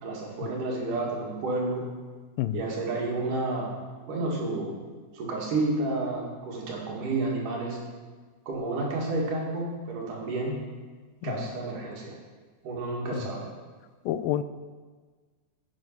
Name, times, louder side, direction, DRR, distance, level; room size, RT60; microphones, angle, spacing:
voice 1, 0.0-1.8 2.5-3.7 4.1-4.7 5.1-7.8 8.5-10.6 11.2-12.1 12.6-13.4, right 2 dB, 65° right, -2 dB, 3.6 m, -30 dB
voice 2, 14.1-14.4, left 12 dB, 85° left, 13 dB, 2.3 m, -27 dB
10.5 x 9.0 x 5.5 m, 1.5 s
omnidirectional pair, 4.0 m